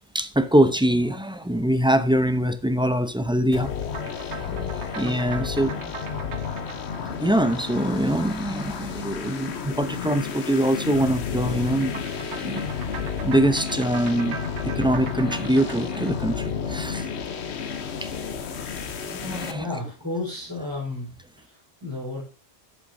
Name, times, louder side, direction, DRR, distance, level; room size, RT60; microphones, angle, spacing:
voice 1, 0.1-3.7 4.5-5.9 7.2-12.0 12.3-12.6 13.2-14.4 14.6-17.1 18.0-18.1 19.1-19.8, right 1 dB, 5° right, 0.4 m, -23 dB
sound 1, 3.5-19.5, left 6 dB, 75° left, 1.2 m, -31 dB
sound 2, 3.8-8.5 11.8-17.2, right 4 dB, 75° right, 1.5 m, -41 dB
voice 2, 19.5-21.1 21.4-22.2, left 2 dB, 15° left, 4.1 m, -32 dB
11.0 x 8.4 x 2.6 m
omnidirectional pair, 1.2 m